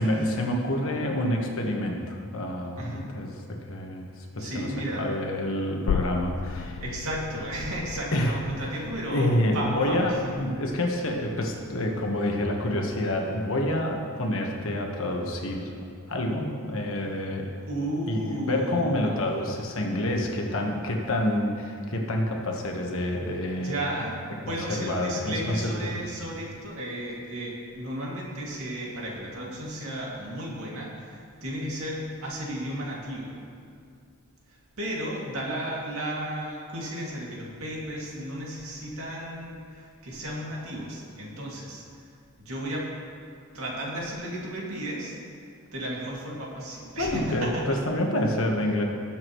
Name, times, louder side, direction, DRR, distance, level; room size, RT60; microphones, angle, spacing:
voice 1, 0.0-4.7 5.0-6.8 8.1-8.7 9.1-15.7 16.1-17.5 18.1-23.9 24.4-26.0 47.0-48.8, left 1 dB, 60° left, 1 dB, 1.3 m, -28 dB
voice 2, 2.8-3.1 4.4-5.4 6.8-10.3 17.7-19.2 23.5-33.3 34.5-41.8 42.4-42.9 43.5-45.2 45.7-47.6, right 1 dB, 70° right, -4 dB, 2.4 m, -34 dB
sound 1, 5.9-13.2 13.5-13.6, left 7 dB, 80° left, 0.3 m, -36 dB
19.0 x 7.4 x 3.1 m, 2.3 s
head